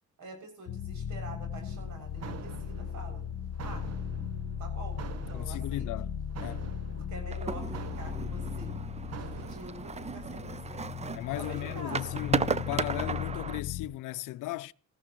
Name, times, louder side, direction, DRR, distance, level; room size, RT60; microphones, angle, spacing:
voice 1, 0.2-3.2 3.6-3.9 4.6-5.9 6.9-8.8 9.1-11.0 11.3-12.2, right 2 dB, 75° right, 6.9 m, -46 dB
sound 1, 0.7-13.9, left 8 dB, 60° left, 1.1 m, -37 dB
sound 2, 1.7-9.8, right 7 dB, 55° right, 1.1 m, -46 dB
voice 2, 5.3-6.1 6.4-6.7 11.1-14.7, left 16 dB, 85° left, 0.6 m, -36 dB
sound 3, 7.3-13.6, right 5 dB, 20° right, 0.5 m, -35 dB
19.5 x 14.5 x 3.1 m
cardioid pair, 90°, 30 cm